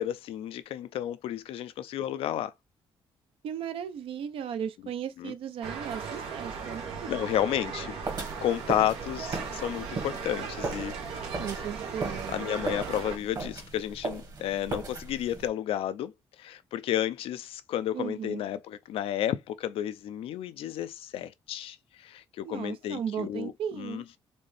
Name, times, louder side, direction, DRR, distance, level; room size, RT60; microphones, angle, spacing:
voice 1, 0.0-2.5 5.2-5.3 7.1-8.0 8.4-11.0 12.1-24.2, left 11 dB, 80° left, 0.4 m, -32 dB
voice 2, 3.4-7.1 11.4-12.5 17.9-18.4 22.4-24.0, right 8 dB, 75° right, 0.7 m, -36 dB
sound 1, 5.6-13.2, right 6 dB, 90° right, 1.2 m, -37 dB
sound 2, 8.0-15.5, right 3 dB, 45° right, 1.5 m, -37 dB
4.1 x 3.3 x 3.4 m
cardioid pair, 100°, 9 cm